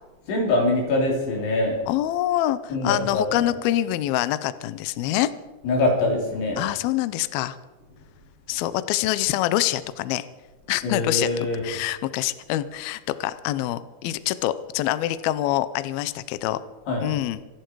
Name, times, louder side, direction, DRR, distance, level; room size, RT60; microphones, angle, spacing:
voice 1, 0.3-1.8 2.7-3.5 5.6-6.6 10.8-11.7 16.9-17.1, left 2 dB, 65° left, 0 dB, 5.6 m, -24 dB
voice 2, 1.9-5.3 6.6-7.6 8.5-10.3 10.7-16.6 17.0-17.4, left 14 dB, 85° left, 14 dB, 2.1 m, -25 dB
26.0 x 11.5 x 4.7 m, 1.1 s
omnidirectional pair, 5.2 m